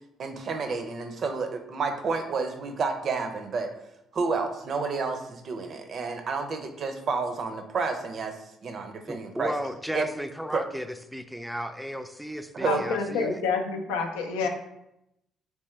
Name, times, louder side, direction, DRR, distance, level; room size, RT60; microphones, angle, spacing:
voice 1, 0.2-3.7 4.1-8.4 8.6-9.5 9.9-10.1 10.5-10.6 12.5-12.8, right 4 dB, 50° right, 6 dB, 0.5 m, -30 dB
voice 2, 9.1-13.4 14.4-14.5, equal, ahead, 9 dB, 0.4 m, -35 dB
voice 3, 12.7-14.5, left 5 dB, 80° left, 4 dB, 0.4 m, -28 dB
3.3 x 3.2 x 3.1 m, 0.84 s
hypercardioid pair, 50°, 0 cm